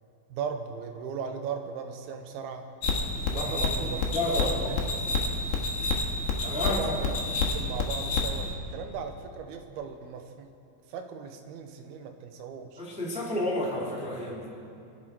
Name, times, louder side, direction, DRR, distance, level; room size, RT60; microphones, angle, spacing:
voice 1, 0.3-2.7 3.3-5.0 6.4-7.1 7.5-10.5 10.9-12.8, right 6 dB, 85° right, 6 dB, 2.9 m, -38 dB
sound 1, 2.8-8.5, left 3 dB, 75° left, 3.2 m, -29 dB
voice 2, 3.3-4.8 6.4-6.8 12.8-14.5, left 1 dB, ahead, -6 dB, 1.8 m, -31 dB
24.0 x 11.0 x 4.5 m, 2.7 s
omnidirectional pair, 4.4 m